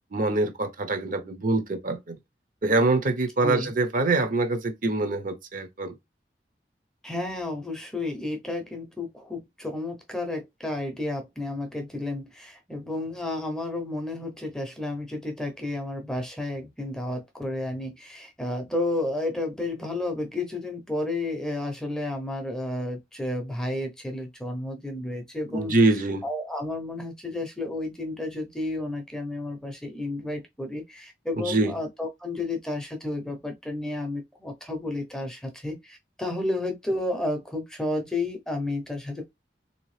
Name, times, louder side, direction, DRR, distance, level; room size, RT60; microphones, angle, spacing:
voice 1, 0.1-2.2 2.6-6.0 25.5-26.2 31.4-31.7, right 2 dB, 50° right, 0.7 m, -24 dB
voice 2, 7.0-25.7 26.2-39.3, left 2 dB, 5° left, 0.6 m, -32 dB
3.5 x 2.8 x 3.2 m
head